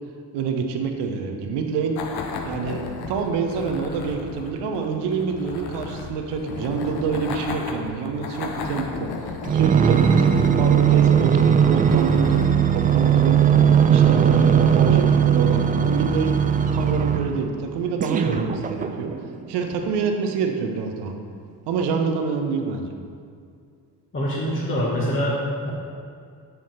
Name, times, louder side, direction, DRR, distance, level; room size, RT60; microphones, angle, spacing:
voice 1, 0.3-2.0 2.4-13.4 13.9-19.1 19.5-21.2 21.7-22.9, right 5 dB, 55° right, 4 dB, 1.1 m, -27 dB
sound 1, 2.0-14.1, left 5 dB, 50° left, 1.0 m, -35 dB
sound 2, 9.4-17.4 18.0-19.3 19.9-20.0, right 8 dB, 20° right, 0.4 m, -18 dB
voice 2, 24.1-25.7, equal, 25° left, -7 dB, 1.7 m, -24 dB
7.9 x 7.5 x 4.3 m, 2.2 s
figure-of-eight pair, 50°, 50 cm